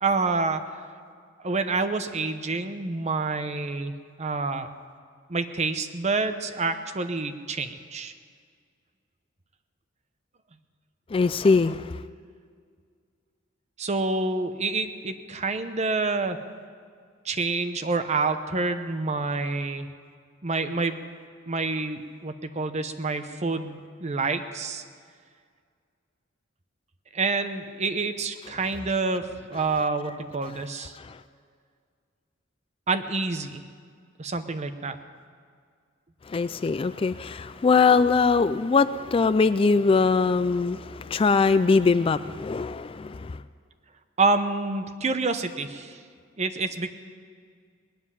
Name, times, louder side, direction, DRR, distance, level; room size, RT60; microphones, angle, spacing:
voice 1, 0.0-0.8 1.4-3.9 4.2-4.7 5.3-8.1 13.8-16.4 17.2-19.9 20.4-21.1 21.5-24.8 27.1-30.9 32.9-33.6 34.2-35.0 44.2-46.0 46.4-46.9, right 3 dB, 35° right, 8 dB, 0.8 m, -27 dB
voice 2, 11.1-11.9 31.0-31.1 36.3-43.4, left 4 dB, 30° left, 13 dB, 0.3 m, -22 dB
19.5 x 7.4 x 9.8 m, 2.1 s
head